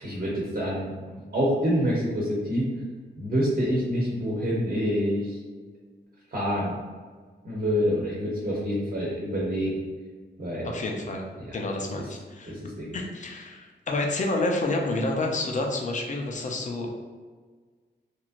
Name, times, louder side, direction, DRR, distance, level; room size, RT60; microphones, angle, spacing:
voice 1, 0.0-2.7 3.2-5.4 6.3-6.8 7.4-9.8 10.4-10.8 11.4-11.6 11.9-12.0 12.4-13.0, equal, 50° right, -6 dB, 0.9 m, -27 dB
voice 2, 10.6-11.2 11.5-12.5 12.9-16.9, left 2 dB, 40° left, 1 dB, 0.5 m, -29 dB
3.1 x 2.6 x 2.5 m, 1.5 s
wide cardioid pair, 105°, 19 cm